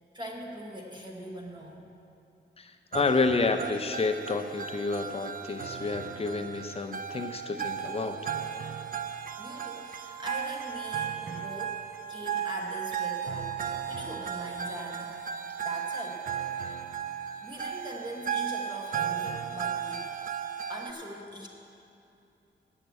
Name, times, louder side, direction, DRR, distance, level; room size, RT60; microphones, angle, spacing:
voice 1, 0.1-1.9 9.1-13.6 13.9-15.3 15.6-16.2 17.4-20.0 20.7-21.5, equal, 20° right, -1 dB, 1.1 m, -42 dB
voice 2, 2.6-8.3, left 3 dB, 30° left, 5 dB, 0.7 m, -29 dB
sound 1, 2.9-20.9, right 8 dB, 45° right, 0.5 m, -35 dB
9.0 x 7.3 x 8.2 m, 2.7 s
wide cardioid pair, 140°, 20 cm